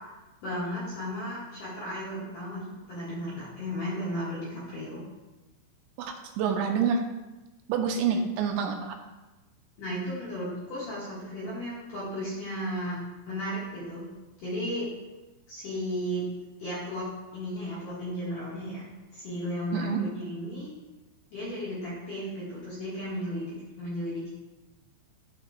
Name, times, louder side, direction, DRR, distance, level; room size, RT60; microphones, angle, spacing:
voice 1, 0.4-5.0 9.8-13.0 13.3-14.1 14.4-14.9 15.5-16.2 16.6-17.1 17.3-18.9 19.1-20.7 21.3-24.3, equal, 55° left, -10 dB, 2.9 m, -34 dB
voice 2, 6.0-7.0 7.7-8.9 19.7-20.0, right 6 dB, 80° right, 3 dB, 2.8 m, -27 dB
13.0 x 5.1 x 2.5 m, 1.1 s
omnidirectional pair, 5.5 m